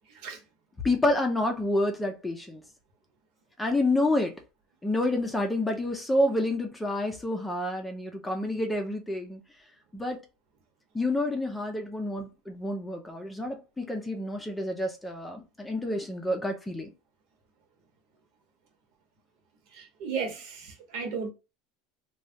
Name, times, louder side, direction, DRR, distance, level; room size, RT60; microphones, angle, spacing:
voice 1, 0.8-2.6 3.6-4.3 4.8-9.4 9.9-10.2 10.9-16.9, left 1 dB, 10° left, 0.6 m, -28 dB
voice 2, 19.7-21.3, right 5 dB, 65° right, 1.1 m, -35 dB
3.1 x 2.3 x 2.7 m
supercardioid pair, 140°, 0 cm